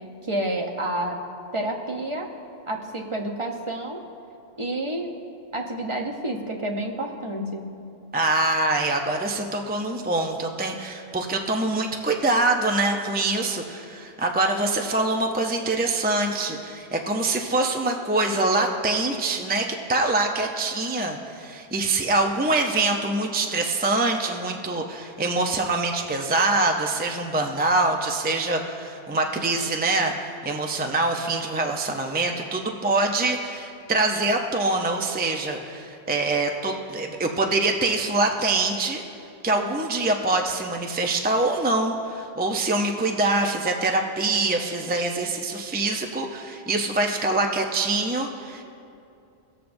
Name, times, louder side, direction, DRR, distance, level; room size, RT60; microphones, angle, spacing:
voice 1, 0.2-1.2 1.5-2.3 2.7-4.0 4.6-5.1 5.5-7.7, right 1 dB, 30° right, 1 dB, 0.8 m, -29 dB
voice 2, 8.1-39.0 39.4-48.6, right 2 dB, 15° right, 3 dB, 0.3 m, -24 dB
19.5 x 6.9 x 2.6 m, 2.6 s
omnidirectional pair, 1.1 m